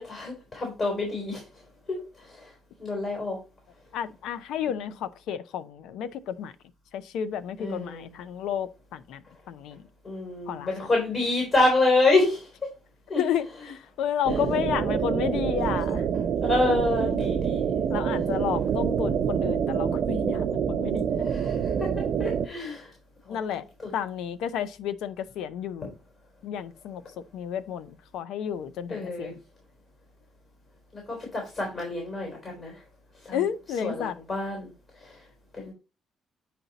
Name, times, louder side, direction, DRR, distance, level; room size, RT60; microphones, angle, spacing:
voice 1, 0.0-1.4 1.9-2.0 2.8-3.4 7.6-8.0 10.1-12.4 13.1-13.2 14.3-14.4 16.4-17.8 21.2-21.5 22.2-22.9 23.8-23.9 28.9-29.3 31.3-32.7 33.3-33.4 33.8-34.7 35.6-35.7, left 2 dB, 40° left, 3.8 m, -26 dB
voice 2, 3.9-6.5 6.9-9.2 9.5-9.8 10.5-10.7 13.2-16.1 17.9-21.3 23.3-23.6 23.9-25.9 26.4-27.0 27.3-29.4 33.3-34.1, left 9 dB, 85° left, 0.6 m, -31 dB
sound 1, 14.2-22.5, right 7 dB, 65° right, 0.6 m, -26 dB
9.0 x 4.3 x 4.0 m
cardioid pair, 95°, 0 cm